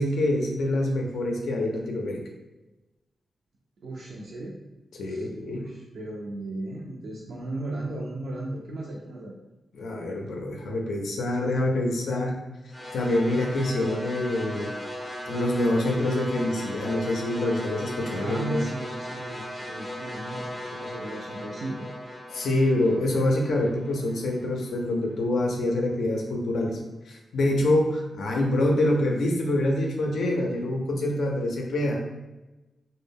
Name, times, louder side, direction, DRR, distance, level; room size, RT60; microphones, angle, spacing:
voice 1, 0.0-2.2 5.0-5.6 9.8-12.4 12.9-14.7 15.3-18.7 22.3-26.8 27.1-32.0, left 1 dB, 85° left, 1 dB, 0.4 m, -26 dB
voice 2, 3.8-4.6 5.0-9.3 18.2-21.9, right 2 dB, 65° right, -3 dB, 0.3 m, -36 dB
sound 1, 12.7-25.0, equal, 15° left, 0.4 m, -38 dB
2.0 x 2.0 x 3.4 m, 1.1 s
wide cardioid pair, 165°, 0 cm